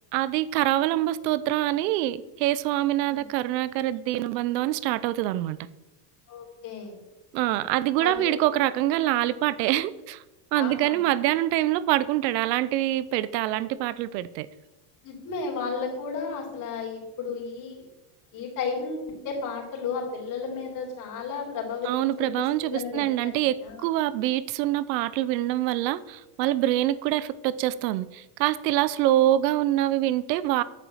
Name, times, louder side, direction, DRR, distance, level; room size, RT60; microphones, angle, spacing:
voice 1, 0.1-5.6 7.3-10.2 10.5-14.5 21.8-30.6, right 14 dB, 85° right, 0.8 m, -25 dB
voice 2, 6.3-6.9 8.0-8.5 10.5-11.0 15.0-17.8 18.3-22.3 22.6-23.3 23.6-23.9, left 5 dB, 40° left, 3.9 m, -33 dB
9.3 x 7.1 x 7.2 m
supercardioid pair, 145°, 49 cm